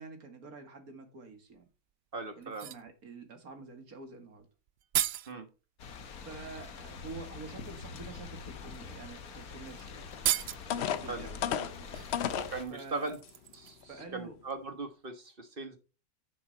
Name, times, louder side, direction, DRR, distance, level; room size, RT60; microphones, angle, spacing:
voice 1, 0.0-1.7 2.4-4.5 6.2-10.2 10.7-13.2 13.8-14.4, right 4 dB, 85° right, 6 dB, 2.4 m, -48 dB
sound 1, 1.5-1.6 2.4-2.9 4.4-4.5 4.7-5.3 6.8-6.9 7.5-7.7 8.6-8.7 9.1-9.2 9.5-9.6 10.1-10.8 11.9-14.0 14.3-14.4, right 11 dB, 65° right, 0.6 m, -35 dB
voice 2, 2.1-2.7 5.3-5.5 11.1-11.3 12.3-13.2 13.6-15.8, right 3 dB, 40° right, 7 dB, 1.5 m, -39 dB
sound 2, 5.8-12.6, left 5 dB, 85° left, 1.6 m, -45 dB
sound 3, 10.1-10.2 10.7-12.6 13.2-13.3 13.8-14.0, left 9 dB, 60° left, 0.8 m, -33 dB
9.4 x 7.1 x 4.1 m, 0.33 s
omnidirectional pair, 1.5 m